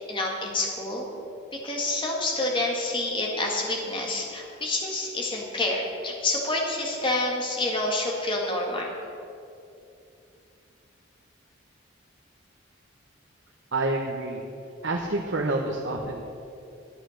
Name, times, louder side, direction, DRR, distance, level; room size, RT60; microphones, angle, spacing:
voice 1, 0.1-1.1 1.5-8.9, left 2 dB, 25° left, -1 dB, 1.9 m, -28 dB
voice 2, 13.7-14.4 14.8-16.2, right 2 dB, 65° right, -1 dB, 1.0 m, -28 dB
12.5 x 10.5 x 6.5 m, 2.6 s
head